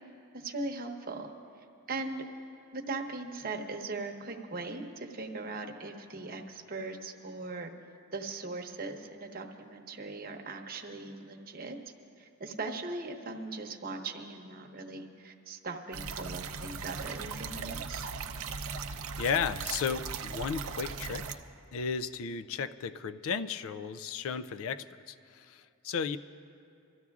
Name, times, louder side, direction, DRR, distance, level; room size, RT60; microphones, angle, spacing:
voice 1, 0.3-1.3 1.9-2.3 2.7-7.7 8.1-11.8 12.2-18.1, right 3 dB, 40° right, 3 dB, 0.9 m, -39 dB
sound 1, 15.9-21.3, right 5 dB, 65° right, 0.6 m, -38 dB
voice 2, 18.7-21.4 21.7-26.2, left 6 dB, 65° left, 12 dB, 0.4 m, -34 dB
27.5 x 13.5 x 2.4 m, 2.5 s
head